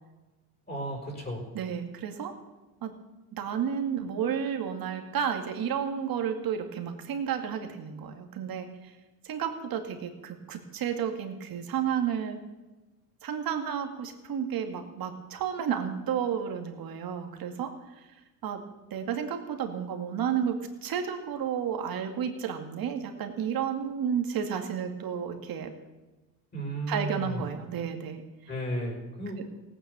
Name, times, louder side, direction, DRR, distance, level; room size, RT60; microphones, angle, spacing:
voice 1, 0.7-1.4 26.5-27.4 28.5-29.4, right 1 dB, 20° left, 0 dB, 5.5 m, -34 dB
voice 2, 1.5-2.3 2.8-2.9 3.3-8.7 9.2-12.4 13.2-17.7 18.4-18.6 18.9-25.7 26.9-28.2, right 8 dB, 50° right, 5 dB, 2.3 m, -31 dB
17.0 x 9.2 x 7.0 m, 1.1 s
cardioid pair, 110°, 44 cm